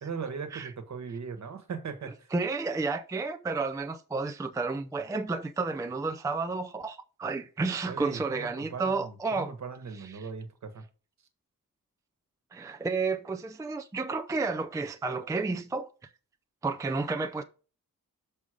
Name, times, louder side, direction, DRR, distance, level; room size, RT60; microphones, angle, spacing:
voice 1, 0.0-2.3 7.9-10.8, right 5 dB, 55° right, 1.3 m, -39 dB
voice 2, 2.3-9.5 10.1-10.2 12.5-15.9 16.6-17.4, right 3 dB, 10° right, 0.4 m, -31 dB
6.2 x 5.4 x 5.0 m
wide cardioid pair, 150°, 34 cm